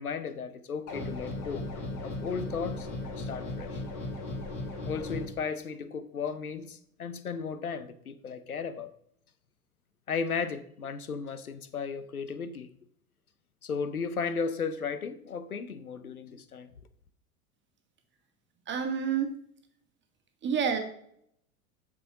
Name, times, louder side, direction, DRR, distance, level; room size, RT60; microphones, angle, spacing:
voice 1, 0.0-1.7 2.0-3.8 4.8-8.9 10.1-12.7 13.6-16.7, left 5 dB, 85° left, 0.8 m, -35 dB
sound 1, 0.9-5.2, left 2 dB, 55° left, 2.6 m, -36 dB
voice 2, 18.7-19.3 20.4-20.8, right 7 dB, 25° right, 1.6 m, -28 dB
7.6 x 6.2 x 4.9 m
figure-of-eight pair, 85°, 43 cm